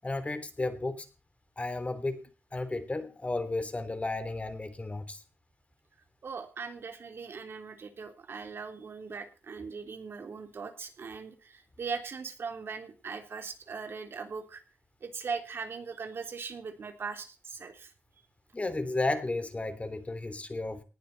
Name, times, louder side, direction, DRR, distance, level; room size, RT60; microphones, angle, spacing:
voice 1, 0.0-1.0 1.6-2.3 2.5-5.2 18.5-20.8, left 2 dB, 35° left, 11 dB, 3.3 m, -33 dB
voice 2, 6.2-14.6 15.0-17.9, right 5 dB, 75° right, 6 dB, 3.3 m, -40 dB
19.0 x 11.0 x 4.2 m, 0.34 s
cardioid pair, 55°, 4 cm